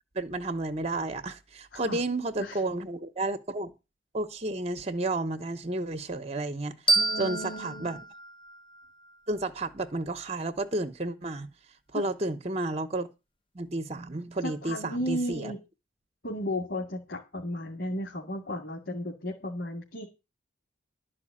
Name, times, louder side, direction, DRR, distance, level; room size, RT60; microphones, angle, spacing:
voice 1, 0.1-3.7 4.1-6.7 7.2-8.0 9.3-11.5 11.9-13.1 13.5-15.5, right 2 dB, 30° right, 0.9 m, -31 dB
voice 2, 1.7-2.0 2.4-2.6 6.9-8.1 11.9-12.1 14.4-15.6 16.2-20.1, left 1 dB, 60° left, 2.4 m, -34 dB
sound 1, 6.9-9.7, right 2 dB, 25° left, 0.9 m, -30 dB
12.0 x 4.9 x 8.7 m
head